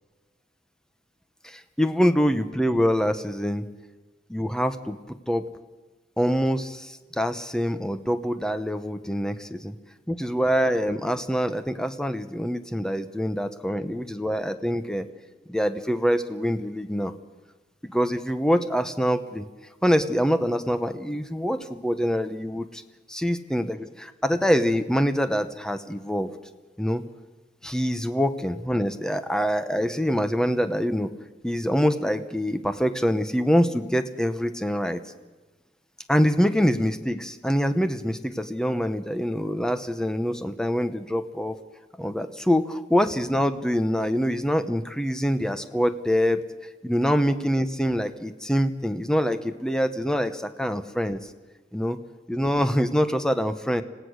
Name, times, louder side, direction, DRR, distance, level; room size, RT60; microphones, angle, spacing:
voice 1, 1.4-3.6 4.3-5.0 5.3-5.5 6.2-9.7 10.1-15.1 15.5-17.1 17.8-19.5 19.8-22.8 23.1-26.3 26.8-27.0 27.6-31.1 31.4-35.0 36.1-41.6 42.0-46.4 46.8-51.2 51.7-52.0 52.3-53.8, equal, 5° left, 10 dB, 1.0 m, -25 dB
26.5 x 17.0 x 6.5 m, 1.2 s
head